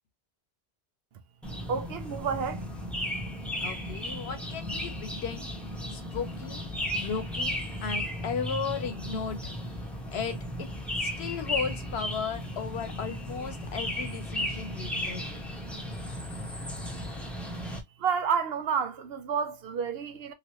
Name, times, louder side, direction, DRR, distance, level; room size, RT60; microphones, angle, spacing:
sound 1, 1.4-17.8, left 1 dB, ahead, 0.7 m, -35 dB
voice 1, 1.7-2.6 18.0-20.3, right 6 dB, 70° right, 0.8 m, -30 dB
voice 2, 3.6-5.5 5.9-6.6 6.9-9.5 10.1-10.7 10.9-15.4, left 6 dB, 75° left, 1.0 m, -35 dB
3.0 x 2.7 x 2.9 m
omnidirectional pair, 1.1 m